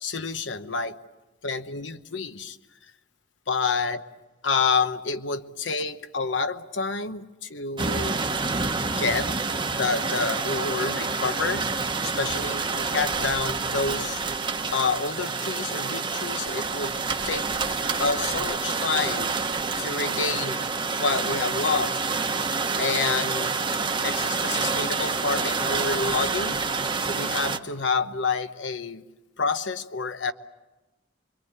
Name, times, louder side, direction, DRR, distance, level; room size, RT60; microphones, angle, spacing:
voice 1, 0.0-1.0 1.4-2.6 3.5-4.0 4.4-8.2 8.7-9.3 9.8-11.7 12.0-14.2 14.7-17.0 17.2-19.3 19.8-20.6 21.0-22.0 22.8-23.5 24.0-26.6 27.0-29.0 29.4-30.3, left 4 dB, 70° left, 10 dB, 1.1 m, -28 dB
sound 1, 7.8-27.6, right 4 dB, 25° right, 1.1 m, -28 dB
25.5 x 23.0 x 8.1 m, 1.1 s
head